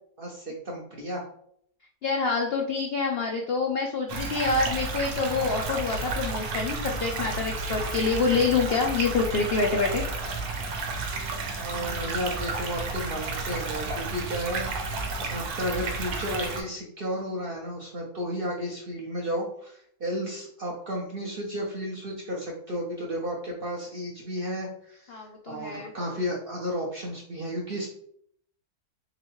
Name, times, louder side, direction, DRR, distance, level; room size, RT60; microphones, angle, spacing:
voice 1, 0.2-1.2 11.6-27.9, equal, 55° right, -2 dB, 0.6 m, -33 dB
voice 2, 2.0-10.0 25.1-25.9, left 4 dB, 70° left, 1 dB, 0.5 m, -26 dB
sound 1, 4.1-16.6, right 3 dB, 75° right, 1.3 m, -32 dB
3.8 x 3.3 x 3.0 m, 0.66 s
omnidirectional pair, 1.7 m